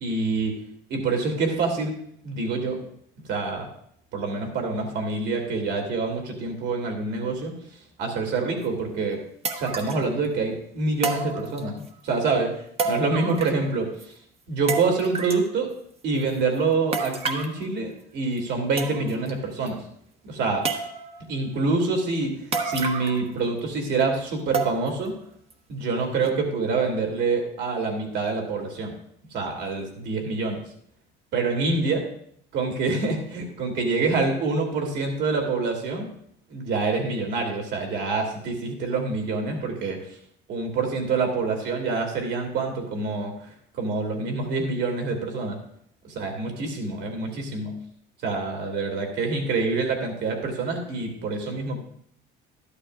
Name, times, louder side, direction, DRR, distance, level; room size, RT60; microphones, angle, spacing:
voice 1, 0.0-0.6 0.9-2.0 2.2-2.8 3.3-3.7 4.1-7.5 8.0-9.2 9.6-12.6 12.8-13.9 14.5-15.7 16.0-19.8 20.2-20.7 21.3-22.4 22.6-25.2 25.7-29.0 29.3-30.6 31.3-32.1 32.5-36.1 36.5-40.0 40.5-45.6 46.2-47.7 48.2-51.8, right 3 dB, 60° right, 2 dB, 2.5 m, -26 dB
sound 1, 8.6-8.7 9.4-10.1 11.0-11.9 12.8-13.7 14.0-14.1 14.7-15.5 16.9-17.6 18.4-18.5 18.8-19.3 19.7-19.8 20.6-21.2 22.5-23.3 23.6-23.7 24.5-25.1 25.5-25.6 26.2-26.3, right 4 dB, 30° right, 1.1 m, -30 dB
12.5 x 11.5 x 2.4 m, 0.66 s
cardioid pair, 130°, 20 cm